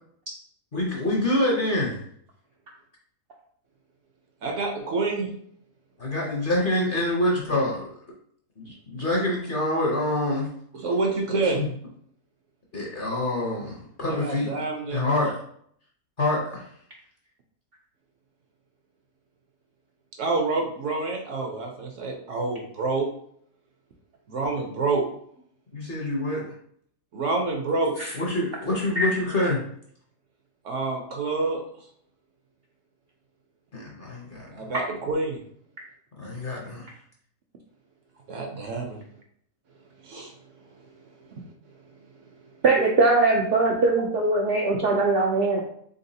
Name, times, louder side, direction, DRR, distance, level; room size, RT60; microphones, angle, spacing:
voice 1, 0.7-2.0 6.0-7.9 8.6-10.5 11.5-11.7 12.7-14.6 14.9-15.4 16.2-16.7 25.7-26.5 28.1-29.6 33.7-34.7 36.2-36.9, left 1 dB, 45° left, -3 dB, 0.8 m, -26 dB
voice 2, 4.4-5.3 10.8-11.6 14.1-15.3 20.2-23.1 24.3-25.0 27.1-27.9 30.6-31.6 34.5-35.4 38.3-39.0 40.0-40.3 40.6-40.7 42.1-42.2, right 3 dB, 60° right, 1 dB, 0.9 m, -27 dB
voice 3, 42.6-45.6, right 3 dB, 80° right, -1 dB, 0.5 m, -21 dB
3.9 x 3.5 x 2.7 m, 0.65 s
omnidirectional pair, 1.6 m